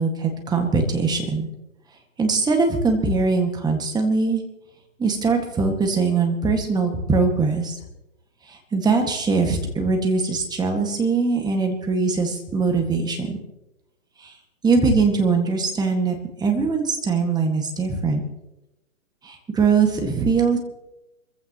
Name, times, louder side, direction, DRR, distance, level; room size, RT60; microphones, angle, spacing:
voice 1, 0.0-1.5 2.2-4.4 5.0-7.8 8.5-13.4 14.2-14.3 14.6-18.2 19.2-20.6, right 4 dB, 10° right, 3 dB, 1.9 m, -21 dB
27.0 x 15.5 x 3.1 m, 0.95 s
hypercardioid pair, 135°, 41 cm